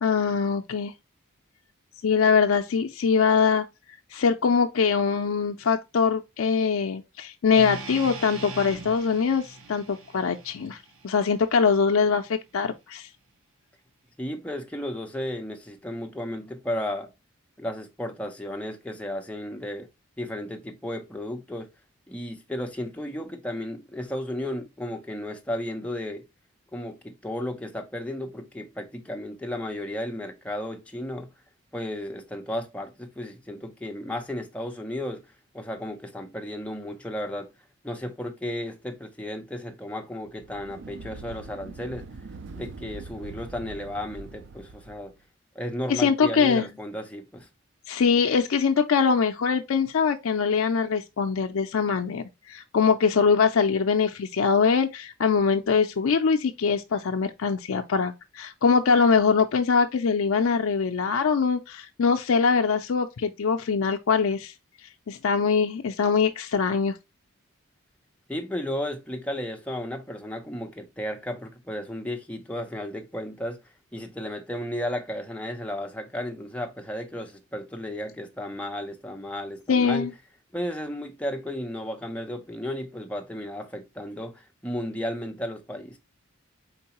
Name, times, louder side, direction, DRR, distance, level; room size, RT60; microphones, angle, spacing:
voice 1, 0.0-0.9 2.0-3.7 4.1-10.8 11.0-13.1 45.9-46.7 47.9-64.5 65.1-66.9 79.7-80.1, left 5 dB, 70° left, 0.4 m, -23 dB
sound 1, 7.5-11.7, right 3 dB, 70° right, 1.0 m, -41 dB
voice 2, 14.2-17.1 17.6-19.9 20.2-21.7 22.1-26.2 26.7-31.3 31.7-35.2 35.5-37.5 37.8-42.1 42.5-45.1 45.5-47.5 68.3-73.6 73.9-80.1 80.5-86.0, left 1 dB, 5° left, 0.6 m, -34 dB
sound 2, 40.3-45.1, right 3 dB, 55° right, 0.4 m, -43 dB
4.5 x 3.9 x 2.9 m
head